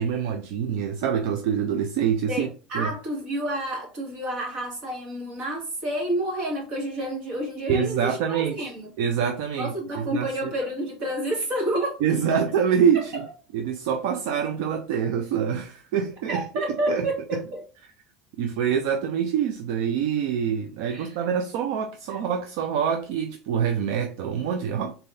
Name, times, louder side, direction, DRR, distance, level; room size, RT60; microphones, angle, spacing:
voice 1, 0.0-2.5 2.7-2.9 7.7-8.7 9.0-10.3 12.0-13.3 13.5-16.4 16.9-17.4 18.4-24.9, right 7 dB, 70° right, 0.5 m, -25 dB
voice 2, 2.3-8.9 9.6-12.0 12.9-13.0 16.3-17.6 20.9-21.2 22.1-22.2, right 1 dB, 45° right, 2.2 m, -29 dB
3.9 x 3.8 x 2.7 m
cardioid pair, 155°, 2 cm